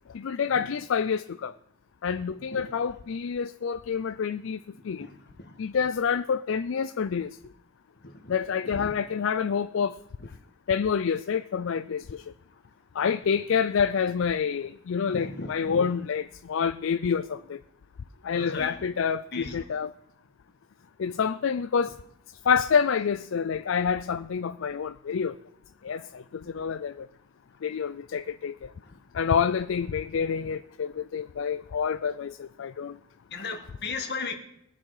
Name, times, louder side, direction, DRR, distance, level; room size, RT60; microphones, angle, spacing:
voice 1, 0.1-1.5 2.0-4.6 4.8-5.1 5.6-7.3 8.3-10.0 10.7-12.2 13.0-17.6 18.2-19.9 21.0-21.9 22.5-25.3 25.8-26.2 26.5-27.1 27.6-28.5 29.1-33.0, left 6 dB, 70° left, 0.4 m, -27 dB
voice 2, 15.1-15.8 18.3-18.8 19.3-19.6 33.3-34.3, left 4 dB, 55° left, 1.7 m, -36 dB
21.0 x 7.4 x 4.8 m
head